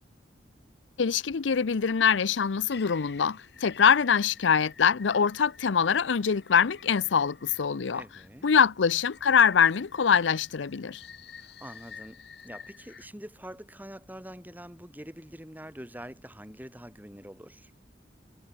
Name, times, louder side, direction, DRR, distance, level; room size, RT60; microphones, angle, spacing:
voice 1, 1.0-8.0 8.4-11.0, left 7 dB, 85° left, 0.6 m, -24 dB
sound 1, 2.7-7.9 8.9-13.1, left 6 dB, 60° left, 3.3 m, -50 dB
voice 2, 7.9-8.5 11.4-17.7, equal, 10° right, 5.9 m, -45 dB
head